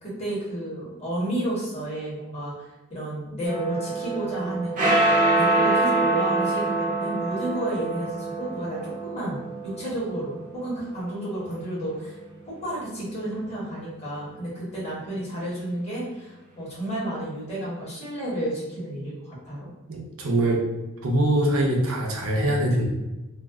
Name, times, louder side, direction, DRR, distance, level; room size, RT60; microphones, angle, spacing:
voice 1, 0.0-9.4 9.6-12.2 12.4-19.7, right 1 dB, 30° left, -7 dB, 1.3 m, -31 dB
sound 1, 3.4-12.0, right 2 dB, 35° right, 0.7 m, -25 dB
voice 2, 19.9-20.6 21.0-22.8, right 1 dB, 70° right, -1 dB, 0.6 m, -23 dB
2.6 x 2.1 x 3.5 m, 1.1 s
head